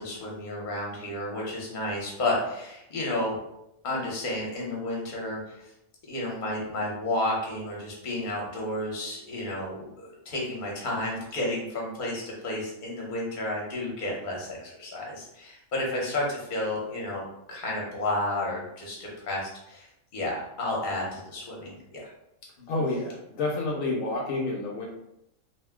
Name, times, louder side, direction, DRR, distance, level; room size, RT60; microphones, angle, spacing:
voice 1, 0.0-3.4 3.8-5.7 6.1-19.9 20.1-22.1 22.6-22.7, left 1 dB, 40° left, -3 dB, 0.8 m, -32 dB
voice 2, 22.7-24.9, left 2 dB, 75° left, -1 dB, 0.9 m, -29 dB
2.6 x 2.1 x 3.5 m, 0.83 s
omnidirectional pair, 1.5 m